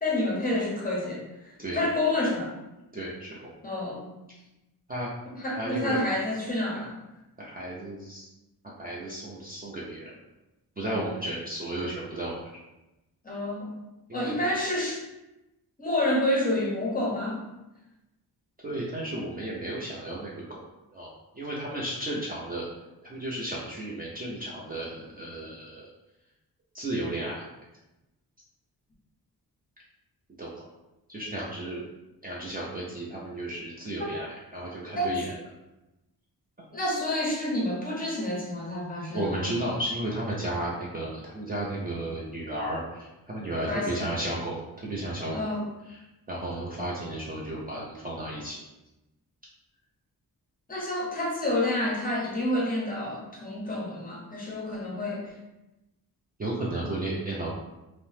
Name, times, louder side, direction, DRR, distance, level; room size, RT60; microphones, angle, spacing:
voice 1, 0.0-2.5 3.6-4.1 5.3-7.0 10.8-11.1 13.2-13.7 14.1-15.0 15.8-17.4 34.0-34.1 34.9-35.1 36.7-39.5 43.7-44.1 45.3-45.7 50.7-55.3, left 1 dB, 25° left, -4 dB, 0.6 m, -29 dB
voice 2, 2.9-3.5 4.9-5.1 5.6-6.0 7.4-8.3 8.6-10.1 10.8-12.3 14.1-14.4 18.6-20.6 20.9-22.7 23.0-25.9 26.7-27.5 30.4-30.6 31.1-31.8 32.2-35.3 39.1-45.5 45.9-46.0 46.3-48.6 56.4-57.5, right 1 dB, 25° right, -6 dB, 0.3 m, -33 dB
2.7 x 2.0 x 3.1 m, 0.98 s
wide cardioid pair, 175°, 37 cm